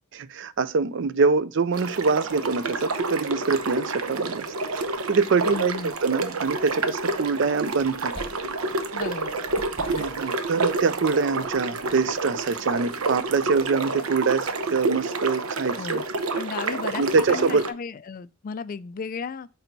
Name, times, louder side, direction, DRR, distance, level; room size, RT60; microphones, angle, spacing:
voice 1, 0.1-4.8 5.1-8.1 9.9-16.0 17.0-17.7, right 4 dB, 60° right, 0.5 m, -24 dB
sound 1, 1.7-17.7, right 3 dB, 85° right, 0.8 m, -29 dB
sound 2, 4.4-13.5, left 1 dB, 25° left, 1.5 m, -49 dB
voice 2, 5.4-5.9 8.9-9.3 15.8-16.1 16.3-19.5, left 5 dB, 40° left, 0.3 m, -34 dB
8.8 x 4.0 x 4.0 m
head